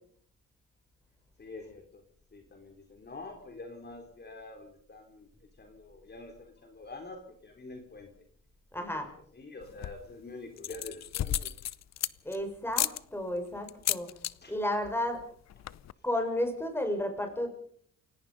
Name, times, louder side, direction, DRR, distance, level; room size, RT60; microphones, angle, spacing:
voice 1, 1.4-2.0 2.3-5.3 5.6-8.1 9.3-11.5 14.4-14.6, left 2 dB, 35° left, 4 dB, 3.9 m, -46 dB
voice 2, 8.7-9.1 12.2-14.1 14.5-15.2 16.0-17.5, left 1 dB, 10° left, 6 dB, 6.0 m, -32 dB
sound 1, 9.6-10.1 10.6-12.4 12.7-13.0 13.7-14.3 14.6-14.9 15.2-15.3 15.5-15.9, left 12 dB, 60° left, 0.8 m, -32 dB
28.5 x 17.5 x 5.5 m, 0.62 s
cardioid pair, 90°, 30 cm